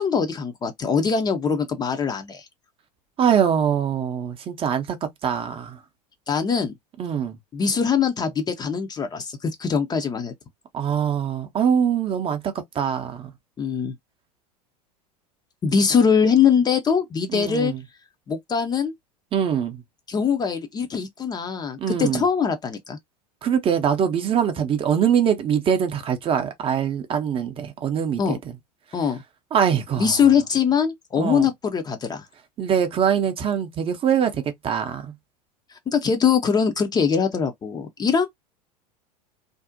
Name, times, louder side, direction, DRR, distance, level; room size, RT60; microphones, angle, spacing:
voice 1, 0.0-2.4 6.3-6.7 7.5-10.3 13.6-13.9 15.6-17.7 18.3-18.9 20.1-23.0 28.2-28.4 28.9-29.2 30.0-32.2 35.9-38.3, left 6 dB, 20° left, 0.5 m, -22 dB
voice 2, 3.2-5.8 7.0-7.4 10.7-13.3 17.3-17.8 19.3-19.8 21.8-22.2 23.4-28.4 29.5-30.1 31.2-31.5 32.6-35.1, right 8 dB, 25° right, 0.5 m, -23 dB
2.5 x 2.0 x 2.5 m
figure-of-eight pair, 80°, 20 cm